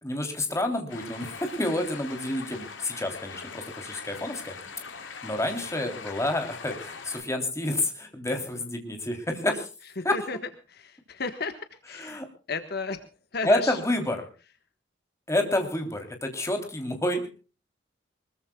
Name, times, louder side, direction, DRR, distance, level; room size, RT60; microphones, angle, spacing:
voice 1, 0.0-4.6 5.2-9.7 10.0-10.2 12.0-12.2 13.4-14.2 15.3-17.3, left 1 dB, 15° left, 5 dB, 3.4 m, -29 dB
sound 1, 0.9-7.2, left 5 dB, 90° left, 3.4 m, -42 dB
voice 2, 10.0-10.4 10.7-12.2 12.5-13.1 13.3-13.8, left 4 dB, 55° left, 8 dB, 1.5 m, -33 dB
24.0 x 21.5 x 2.4 m, 0.35 s
head